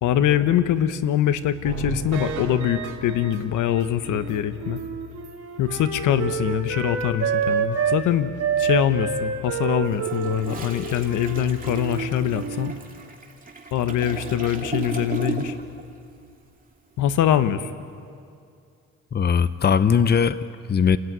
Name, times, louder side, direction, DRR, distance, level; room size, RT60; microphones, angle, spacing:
voice 1, 0.0-4.8 5.6-12.7 13.7-15.6 17.0-17.7, left 10 dB, 85° left, 11 dB, 1.1 m, -23 dB
sound 1, 1.6-4.4 4.8-4.9 5.2-5.3 5.7-5.8, right 4 dB, 90° right, 2.7 m, -33 dB
Wind instrument woodwind instrument, 4.0-8.0 8.4-12.8, right 7 dB, 55° right, 3.2 m, -28 dB
Toilet flush, 9.8-15.8 16.1-16.4, right 4 dB, 25° right, 2.7 m, -35 dB
voice 2, 19.1-21.0, left 6 dB, 35° left, 14 dB, 0.8 m, -20 dB
29.0 x 14.0 x 9.5 m, 2.4 s
cardioid pair, 90°, 30 cm